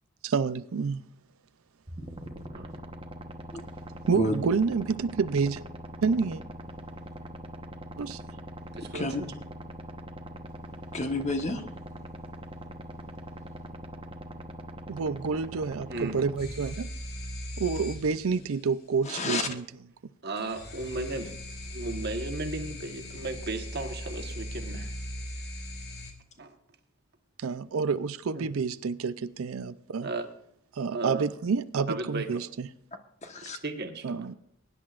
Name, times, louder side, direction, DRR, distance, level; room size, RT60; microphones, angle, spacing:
voice 1, 0.2-1.0 4.1-5.6 6.0-6.4 8.0-8.2 14.9-16.9 17.6-19.7 27.4-30.1 30.7-32.7 34.0-34.3, right 5 dB, 80° right, 0.5 m, -28 dB
sound 1, 1.9-16.4, equal, 25° right, 1.1 m, -42 dB
voice 2, 8.7-9.3 15.9-16.2 19.3-19.4 20.2-21.3 21.7-24.9 26.4-26.5 28.3-28.5 30.0-30.3 30.9-31.3 31.9-32.4 33.6-34.3, right 2 dB, 50° right, 1.3 m, -35 dB
voice 3, 10.9-11.6 19.1-19.5 33.2-33.6, left 2 dB, 35° left, 1.2 m, -30 dB
sound 2, 16.4-18.7 20.4-26.1, equal, 50° left, 2.2 m, -39 dB
22.5 x 10.5 x 2.5 m
head